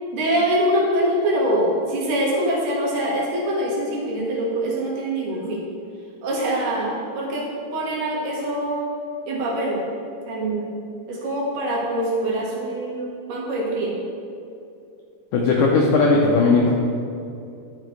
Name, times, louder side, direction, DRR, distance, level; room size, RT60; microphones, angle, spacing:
voice 1, 0.1-5.6 6.2-7.4 7.7-8.9 9.3-9.8 10.3-10.7 11.1-13.9, right 1 dB, 70° right, -4 dB, 3.5 m, -24 dB
voice 2, 15.3-16.7, left 3 dB, 90° left, -2 dB, 1.8 m, -17 dB
12.5 x 6.4 x 3.2 m, 2.6 s
omnidirectional pair, 4.7 m